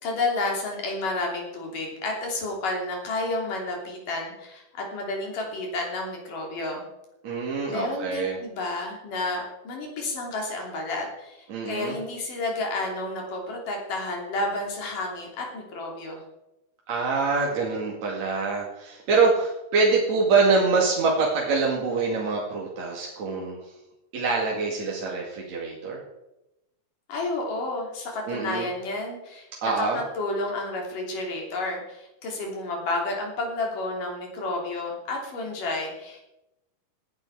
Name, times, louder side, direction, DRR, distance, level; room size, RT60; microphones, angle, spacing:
voice 1, 0.0-6.8 7.7-16.2 27.1-36.2, left 2 dB, 60° left, 0 dB, 4.5 m, -31 dB
voice 2, 7.2-8.4 11.5-11.9 16.9-23.6 24.1-26.0 28.3-28.7 29.6-30.0, right 4 dB, 50° right, -3 dB, 3.2 m, -25 dB
17.5 x 10.5 x 4.8 m, 0.91 s
omnidirectional pair, 4.4 m